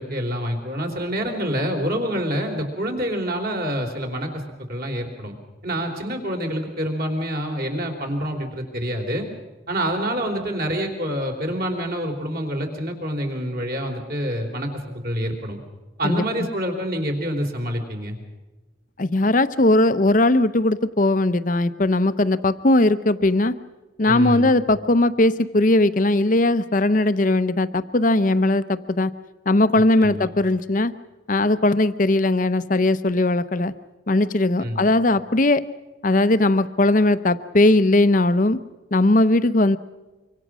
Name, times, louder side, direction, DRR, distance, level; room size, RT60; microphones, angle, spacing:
voice 1, 0.0-4.4 4.7-5.4 5.6-9.3 9.7-15.6 16.0-18.2 24.1-24.5 30.0-30.3 34.6-34.9, equal, 50° right, 3 dB, 3.6 m, -27 dB
voice 2, 16.0-16.5 19.0-23.5 24.0-29.1 29.5-30.9 31.3-33.7 34.1-35.6 36.0-38.6 38.9-39.8, left 2 dB, 45° left, 13 dB, 0.7 m, -19 dB
25.0 x 24.5 x 6.2 m, 1.2 s
head